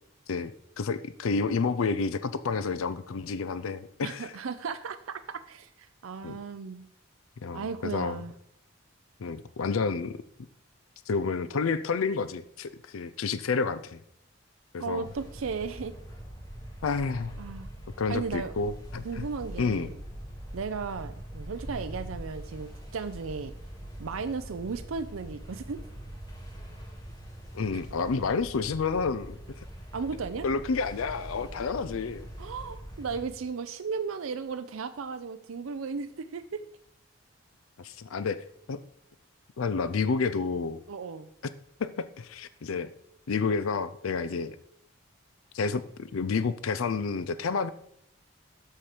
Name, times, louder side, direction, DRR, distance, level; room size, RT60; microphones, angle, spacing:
voice 1, 0.3-4.3 6.2-6.4 7.4-8.2 9.2-10.2 11.1-14.0 14.7-15.1 16.8-17.4 18.0-19.3 19.6-19.9 27.5-29.4 30.4-32.3 37.8-38.8 39.6-40.8 41.8-42.9 43.3-44.6 45.5-47.7, left 4 dB, 90° left, 13 dB, 0.5 m, -30 dB
voice 2, 4.0-6.9 7.5-8.3 14.8-15.9 17.4-17.7 18.1-18.5 19.0-20.0 20.5-23.5 24.0-25.8 27.7-27.8 29.9-30.5 32.4-36.6 40.9-41.3, right 5 dB, 90° right, 10 dB, 0.5 m, -35 dB
sound 1, 15.0-33.2, right 1 dB, 15° left, 1.8 m, -43 dB
13.0 x 4.4 x 4.9 m, 0.74 s
head